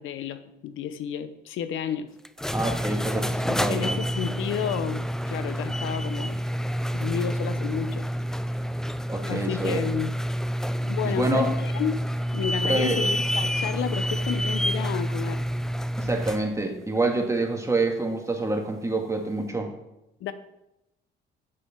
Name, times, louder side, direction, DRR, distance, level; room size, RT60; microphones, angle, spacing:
voice 1, 0.0-2.1 3.5-6.4 6.9-8.1 9.3-10.1 10.8-12.0 12.3-15.4 20.2-20.3, left 9 dB, 85° left, 12 dB, 0.7 m, -31 dB
sound 1, 2.2-16.5, equal, 5° left, 0.3 m, -28 dB
voice 2, 2.5-4.0 9.1-9.8 11.0-11.5 12.6-13.0 16.0-19.7, right 2 dB, 15° right, 2 dB, 1.9 m, -27 dB
7.6 x 6.6 x 5.9 m, 0.89 s
cardioid pair, 90°, 20 cm